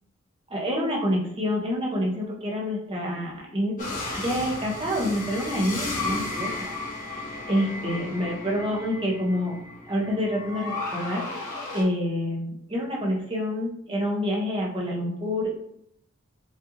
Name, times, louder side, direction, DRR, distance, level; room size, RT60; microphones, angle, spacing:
voice 1, 0.5-3.9 4.2-6.5 7.5-9.6 9.8-11.3 11.7-15.5, equal, 30° right, -3 dB, 1.2 m, -27 dB
sound 1, 3.8-11.8, left 2 dB, 40° left, 1.4 m, -34 dB
5.2 x 3.5 x 2.6 m, 0.70 s
head